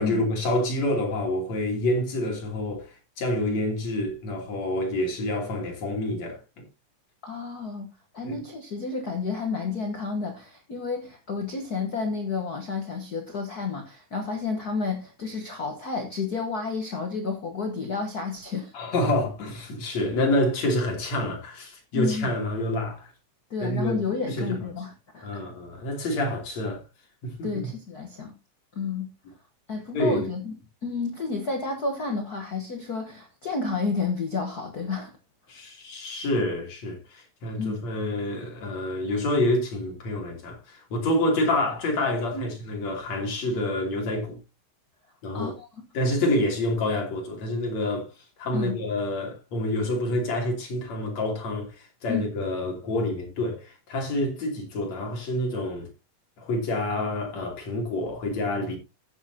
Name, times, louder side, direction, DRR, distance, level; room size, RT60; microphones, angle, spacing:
voice 1, 0.0-6.4 8.2-8.4 18.7-23.1 23.6-24.0 24.3-24.6 25.2-26.8 27.2-27.7 29.9-30.3 35.5-44.4 45.2-45.6 45.9-55.9 56.4-58.8, left 1 dB, 55° left, 4.0 m, -27 dB
voice 2, 7.2-7.9 8.1-18.7 21.9-22.3 23.5-25.4 27.4-28.3 28.7-29.1 29.7-30.6 30.8-35.1 37.6-37.8 42.3-42.5 45.3-45.7 48.5-48.8 52.1-52.3, left 4 dB, 85° left, 0.8 m, -31 dB
15.0 x 8.1 x 2.8 m
omnidirectional pair, 3.8 m